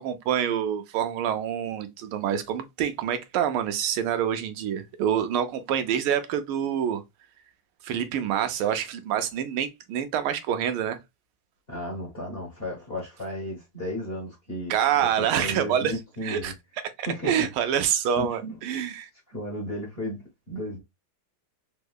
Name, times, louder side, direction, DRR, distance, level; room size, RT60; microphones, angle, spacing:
voice 1, 0.0-7.0 7.8-11.0 14.7-15.9 16.2-16.5 17.0-19.1, right 9 dB, 80° right, 1.4 m, -26 dB
voice 2, 11.7-14.7 15.0-16.5 17.0-17.5 18.1-18.6 19.3-20.8, equal, 35° left, 1.0 m, -34 dB
3.7 x 2.8 x 2.3 m
omnidirectional pair, 2.3 m